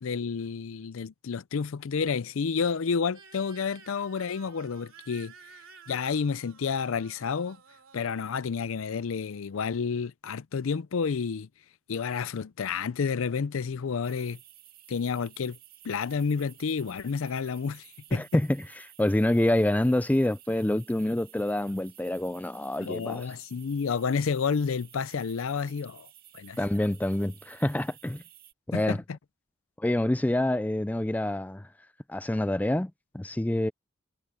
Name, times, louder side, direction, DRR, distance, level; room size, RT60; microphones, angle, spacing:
voice 1, 0.0-5.3 5.9-7.6 7.9-11.5 11.9-14.4 14.9-15.6 15.8-18.2 22.8-26.1 26.3-26.6 28.7-29.0, left 5 dB, 70° left, 0.5 m, -30 dB
sound 1, 3.1-9.9, right 6 dB, 70° right, 3.0 m, -54 dB
sound 2, 14.0-28.5, right 13 dB, 45° right, 2.1 m, -54 dB
voice 2, 18.1-23.3 26.6-28.2 28.7-29.0 29.8-31.7 32.1-33.7, left 1 dB, 5° left, 0.3 m, -27 dB
head